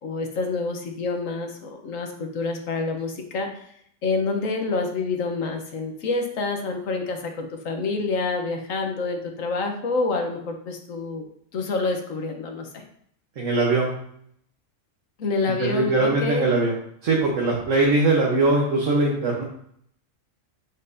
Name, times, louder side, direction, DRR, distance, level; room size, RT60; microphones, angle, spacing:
voice 1, 0.0-3.7 4.0-11.3 11.5-12.8 15.2-16.5, left 3 dB, 85° left, 4 dB, 1.4 m, -27 dB
voice 2, 13.4-13.9 15.6-16.7 17.0-19.4, right 2 dB, 75° right, -2 dB, 1.5 m, -21 dB
7.6 x 5.9 x 2.7 m, 0.67 s
omnidirectional pair, 1.3 m